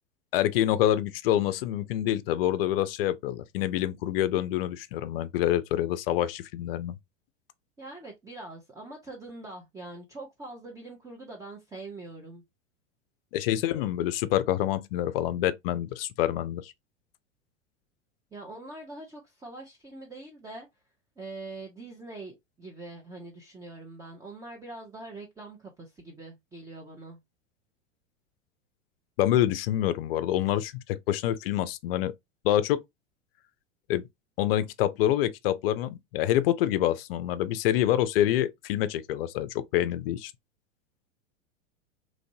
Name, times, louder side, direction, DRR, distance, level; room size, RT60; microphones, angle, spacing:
voice 1, 0.3-7.0 13.3-16.7 29.2-32.1 32.4-32.8 33.9-34.0 34.4-40.3, left 12 dB, 50° left, 0.5 m, -26 dB
voice 2, 7.8-12.4 18.3-20.7 21.2-27.2, right 2 dB, 10° right, 0.5 m, -43 dB
3.1 x 2.5 x 2.6 m
figure-of-eight pair, 90°, 38 cm